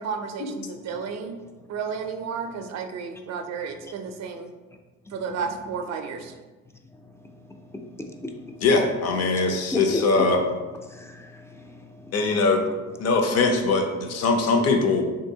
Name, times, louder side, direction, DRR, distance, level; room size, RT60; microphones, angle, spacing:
voice 1, 0.0-1.3 1.7-4.5 5.1-6.3, right 6 dB, 60° right, 6 dB, 0.4 m, -32 dB
voice 2, 7.0-7.4 7.7-8.6 9.7-10.3 10.8-12.1, left 2 dB, 10° left, 3 dB, 0.3 m, -33 dB
voice 3, 8.6-10.4 12.1-12.6 13.0-15.1, left 3 dB, 55° left, 4 dB, 0.6 m, -21 dB
3.3 x 2.7 x 2.7 m, 1.2 s
cardioid pair, 90°, 30 cm